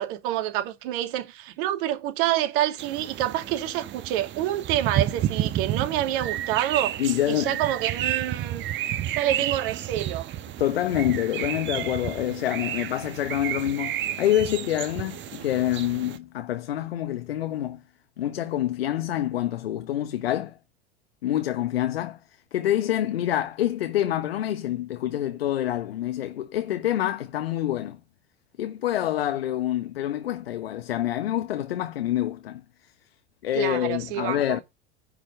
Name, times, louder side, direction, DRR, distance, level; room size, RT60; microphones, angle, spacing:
voice 1, 0.0-7.0 7.3-8.6 9.2-10.3 33.5-34.6, right 13 dB, 55° right, 2.7 m, -27 dB
sound 1, 2.8-16.2, right 11 dB, 35° right, 1.5 m, -31 dB
voice 2, 7.0-7.6 10.6-17.8 18.2-20.6 21.2-22.2 22.5-28.0 28.6-32.6 33.4-34.6, left 12 dB, 70° left, 1.2 m, -26 dB
10.0 x 5.6 x 7.8 m
figure-of-eight pair, 80°, 31 cm